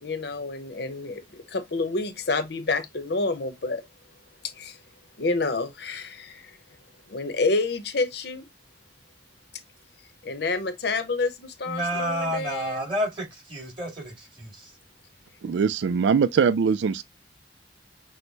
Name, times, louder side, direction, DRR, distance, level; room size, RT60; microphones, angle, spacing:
voice 1, 0.0-3.8 4.5-4.8 5.2-6.6 7.1-8.5 10.2-12.9, left 3 dB, 65° left, 0.8 m, -28 dB
voice 2, 11.7-14.1 14.4-14.5, equal, 30° right, 2.7 m, -29 dB
voice 3, 15.4-17.0, right 6 dB, 75° right, 0.3 m, -22 dB
6.3 x 2.1 x 3.9 m
head